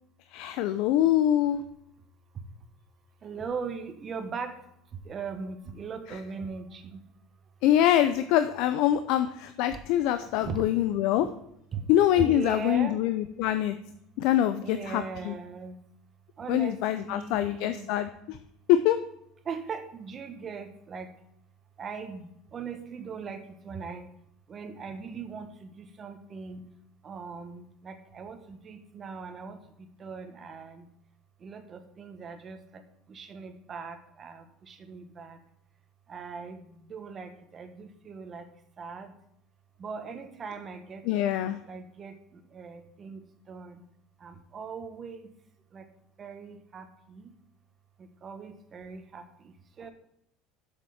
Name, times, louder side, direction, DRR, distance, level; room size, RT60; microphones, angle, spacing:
voice 1, 0.3-1.6 7.6-11.3 11.9-13.7 14.2-15.3 16.5-18.4 18.7-19.0 41.1-41.6, left 12 dB, 65° left, 11 dB, 0.6 m, -24 dB
voice 2, 3.2-4.5 5.0-7.0 10.2-10.6 11.7-11.8 12.1-13.0 14.6-15.7 16.4-17.9 19.5-21.1 21.8-22.2 22.5-24.0 24.5-26.6 27.0-29.6 30.0-30.8 31.4-32.6 33.1-35.4 36.1-36.6 36.9-38.4 38.8-39.1 39.8-42.1 42.5-43.2 43.5-43.7 44.2-45.2 45.7-45.8 46.2-47.2 48.2-49.2 49.8-49.9, right 5 dB, 30° right, 8 dB, 1.3 m, -39 dB
7.5 x 7.3 x 7.1 m, 0.76 s
supercardioid pair, 130°, 0 cm